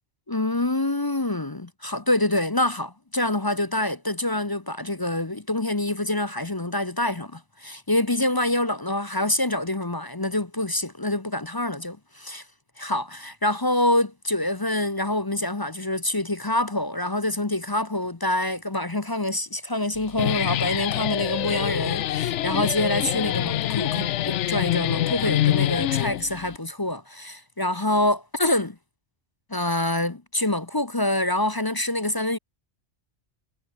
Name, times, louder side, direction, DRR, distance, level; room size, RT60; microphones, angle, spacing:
voice 1, 0.3-12.4 12.8-28.8 29.5-32.4, left 1 dB, 20° left, 0.8 m, -26 dB
Guitar, 19.9-26.6, left 13 dB, 90° left, 0.9 m, -25 dB
omnidirectional pair, 1.2 m